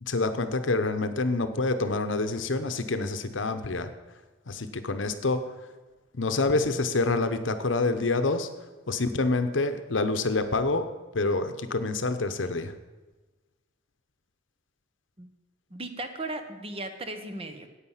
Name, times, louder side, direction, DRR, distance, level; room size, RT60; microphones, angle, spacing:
voice 1, 0.0-3.9 4.5-5.4 6.1-8.5 8.9-10.9 11.1-12.7, left 3 dB, 75° left, 10 dB, 0.9 m, -27 dB
voice 2, 15.7-17.7, right 2 dB, 30° right, 7 dB, 1.1 m, -36 dB
9.9 x 8.7 x 7.3 m, 1.2 s
head